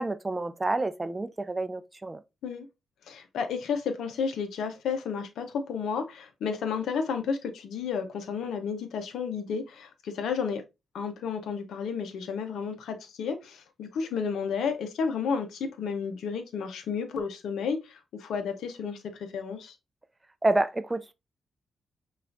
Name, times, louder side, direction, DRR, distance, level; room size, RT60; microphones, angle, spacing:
voice 1, 0.0-2.2 20.4-21.1, right 2 dB, 25° right, 0.4 m, -28 dB
voice 2, 3.1-10.6 10.9-19.7, left 6 dB, 80° left, 0.6 m, -32 dB
5.6 x 2.4 x 2.5 m
supercardioid pair, 45°, 0 cm